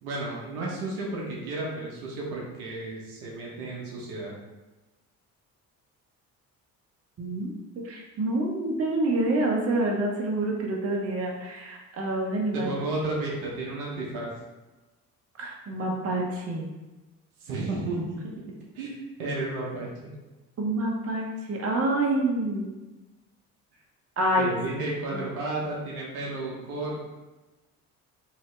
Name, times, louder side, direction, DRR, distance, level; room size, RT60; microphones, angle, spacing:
voice 1, 0.0-4.3 12.5-14.3 17.4-18.3 18.7-19.9 24.4-27.0, right 2 dB, 75° right, -3 dB, 0.9 m, -32 dB
voice 2, 7.2-7.5 7.8-12.7 15.4-16.7 20.6-22.7 24.2-24.5 25.1-25.2, right 1 dB, 35° right, -1 dB, 0.9 m, -27 dB
2.8 x 2.7 x 3.2 m, 1.1 s
hypercardioid pair, 55°, 44 cm